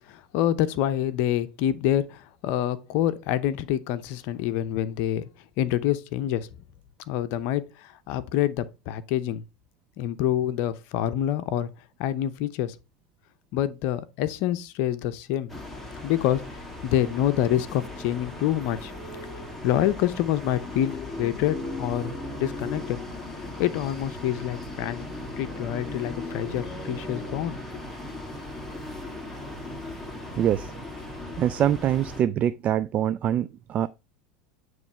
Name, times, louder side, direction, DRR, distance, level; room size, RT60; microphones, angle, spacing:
voice 1, 0.1-5.3 5.6-6.5 7.1-9.4 10.0-11.7 12.0-12.8 13.5-15.5 16.0-18.9 19.3-22.1 22.4-23.0 23.4-25.0 25.4-27.8, left 11 dB, 60° left, 0.7 m, -27 dB
sound 1, 15.5-32.2, left 2 dB, 5° left, 2.1 m, -37 dB
voice 2, 30.3-30.7 31.4-33.9, right 10 dB, 40° right, 0.3 m, -24 dB
9.4 x 3.2 x 4.3 m
hypercardioid pair, 90°, 4 cm